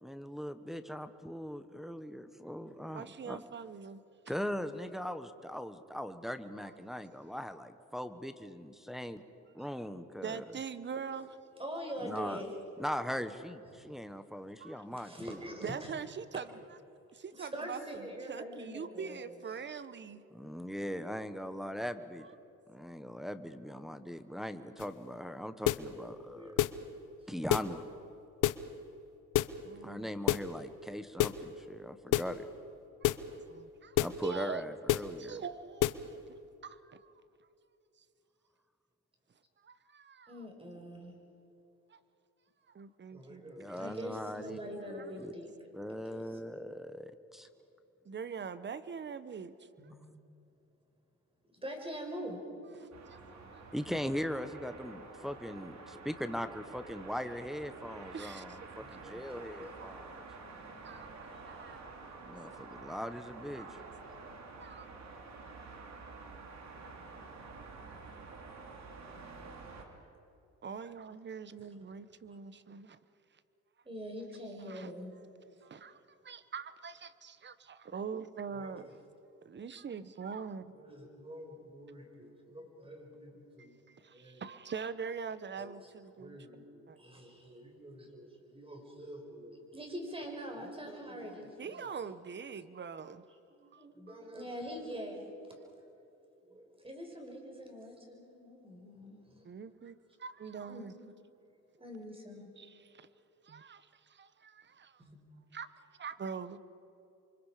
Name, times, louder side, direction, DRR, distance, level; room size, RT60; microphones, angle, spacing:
voice 1, 0.0-3.4 4.3-9.2 9.5-10.4 12.0-12.4 12.8-15.4 20.3-22.3 22.7-26.5 27.3-27.8 29.8-32.4 34.0-35.4 43.6-44.6 45.2-45.3 45.7-47.5 50.0-50.1 53.7-60.2 62.3-63.7, equal, ahead, 1.2 m, -40 dB
voice 2, 2.9-4.0 10.2-11.3 14.6-14.9 15.6-16.5 17.1-20.3 29.6-30.1 33.0-34.0 34.2-34.6 35.2-36.3 36.6-37.1 39.6-40.4 41.9-42.0 42.7-43.9 48.0-49.7 52.8-53.2 53.5-54.1 58.1-58.8 59.8-59.9 60.8-62.0 63.5-63.7 64.6-64.9 70.6-73.0 74.7-74.9 75.6-79.0 79.4-80.6 83.9-86.4 86.9-87.0 91.6-93.2 93.7-94.2 99.4-101.1 102.6-103.1 103.4-105.0 105.5-106.6, right 6 dB, 35° right, 1.0 m, -43 dB
voice 3, 11.6-12.5 13.7-13.9 15.0-15.9 17.3-19.4 25.9-26.7 40.3-41.2 43.1-45.5 45.9-46.4 49.8-49.9 51.6-52.4 58.8-59.8 61.3-61.6 73.8-75.2 78.5-78.7 80.7-83.7 84.1-84.5 85.6-85.7 86.2-92.0 93.5-95.4 95.8-96.0 96.4-99.4 100.7-101.0 101.8-102.5 105.0-105.2, equal, 20° right, 5.5 m, -45 dB
sound 1, 24.8-25.0 25.7-25.9 26.6-26.8 27.5-27.7 28.4-28.7 29.3-29.6 30.3-30.5 31.2-31.4 32.1-32.4 33.0-33.3 34.0-34.2 34.9-35.1 35.8-36.0, left 15 dB, 90° left, 0.7 m, -28 dB
sound 2, 52.9-69.8, right 4 dB, 65° right, 3.3 m, -49 dB
28.5 x 24.5 x 5.1 m
cardioid pair, 90°, 30 cm